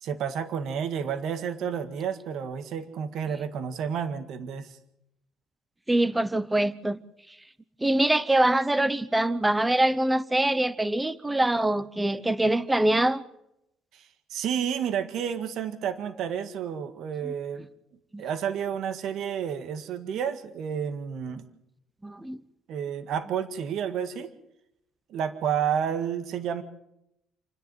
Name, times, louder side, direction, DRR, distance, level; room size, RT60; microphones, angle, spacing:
voice 1, 0.0-4.8 13.9-17.6 18.2-21.4 22.7-24.3 25.1-26.6, right 8 dB, 60° right, 9 dB, 1.8 m, -30 dB
voice 2, 5.9-7.0 7.8-13.2 17.2-17.3 18.1-18.2 22.0-22.4, right 1 dB, 10° right, 16 dB, 0.8 m, -24 dB
28.5 x 10.5 x 9.5 m, 0.80 s
cardioid pair, 155°, 0 cm